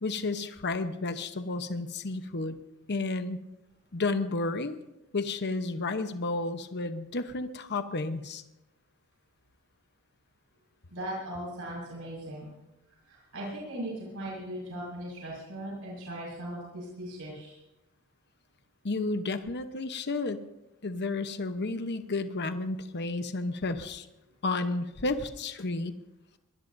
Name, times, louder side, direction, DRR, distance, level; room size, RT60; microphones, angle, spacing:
voice 1, 0.0-2.6 2.9-3.4 3.9-4.8 5.1-8.4 18.8-20.4 20.8-24.1 24.4-25.9, left 3 dB, 50° left, 9 dB, 0.9 m, -32 dB
voice 2, 10.9-12.5 13.1-17.6, right 1 dB, 70° right, -5 dB, 5.6 m, -38 dB
22.5 x 19.5 x 2.7 m, 0.96 s
head